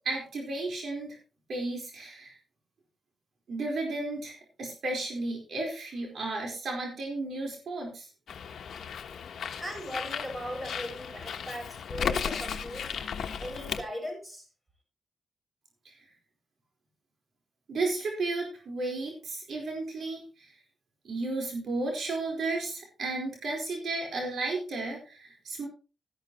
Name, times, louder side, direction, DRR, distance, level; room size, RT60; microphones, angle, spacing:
voice 1, 0.0-1.2 1.5-2.3 3.5-8.1 15.8-15.9 17.7-20.5 21.0-25.7, right 2 dB, 70° right, 1 dB, 4.5 m, -33 dB
Bird, 8.3-13.8, left 7 dB, 75° left, 1.2 m, -35 dB
voice 2, 9.6-12.9 13.4-14.5, equal, 15° right, 1 dB, 7.3 m, -38 dB
14.0 x 11.5 x 3.1 m, 0.34 s
cardioid pair, 90°, 0 cm